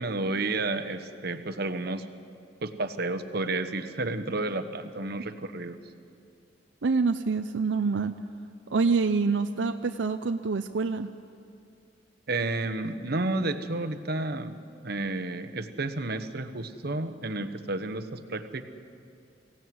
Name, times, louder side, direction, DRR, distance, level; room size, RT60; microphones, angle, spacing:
voice 1, 0.0-2.0 2.6-5.8 12.3-18.6, right 2 dB, 60° right, 9 dB, 1.1 m, -31 dB
voice 2, 6.8-8.1 8.7-11.1, right 4 dB, 85° right, 7 dB, 0.6 m, -26 dB
23.0 x 16.5 x 9.4 m, 2.5 s
head